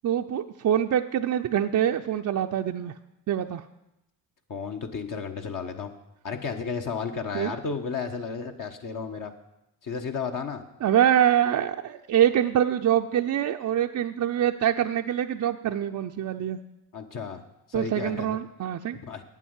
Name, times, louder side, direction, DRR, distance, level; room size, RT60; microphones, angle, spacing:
voice 1, 0.0-2.9 3.3-3.6 7.3-7.5 10.8-16.6 17.7-19.0, right 10 dB, 45° right, 5 dB, 0.5 m, -25 dB
voice 2, 4.5-5.9 6.2-9.3 9.8-10.6 16.9-17.4 17.7-18.4 19.0-19.2, left 5 dB, 50° left, 4 dB, 1.1 m, -33 dB
8.7 x 7.4 x 8.0 m, 0.89 s
cardioid pair, 75°, 41 cm